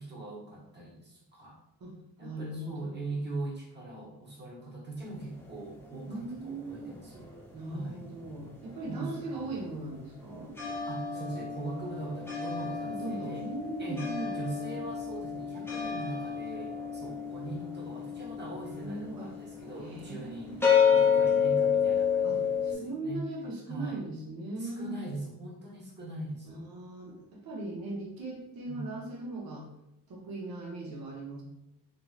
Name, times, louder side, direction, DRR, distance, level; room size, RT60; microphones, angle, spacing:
voice 1, 0.0-1.6 2.2-7.3 7.7-8.0 8.9-9.3 10.9-13.5 13.8-14.1 14.3-23.2 23.7-24.0 24.6-26.6 28.7-28.8, right 2 dB, 25° right, -4 dB, 1.0 m, -41 dB
voice 2, 2.2-3.2 6.0-6.9 7.5-10.5 12.9-14.4 18.8-19.3 19.8-20.8 22.2-25.0 26.4-29.6 30.1-31.4, right 2 dB, 60° right, -3 dB, 0.8 m, -39 dB
sound 1, 5.0-7.7 8.0-22.7, left 7 dB, 5° left, 0.6 m, -30 dB
3.0 x 2.7 x 2.3 m, 0.86 s
cardioid pair, 75°, 41 cm